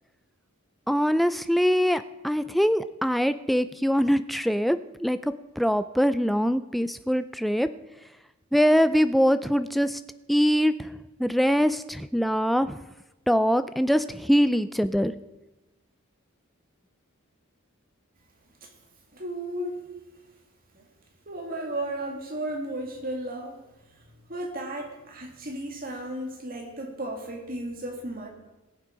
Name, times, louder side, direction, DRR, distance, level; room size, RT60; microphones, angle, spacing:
voice 1, 0.9-7.7 8.5-10.0 10.3-10.9 11.2-12.8 13.3-15.1, equal, ahead, 12 dB, 0.3 m, -23 dB
voice 2, 19.1-19.9 20.7-20.8 21.3-23.6 24.3-28.3, right 1 dB, 40° right, 1 dB, 2.2 m, -34 dB
20.0 x 7.4 x 5.1 m, 1.0 s
head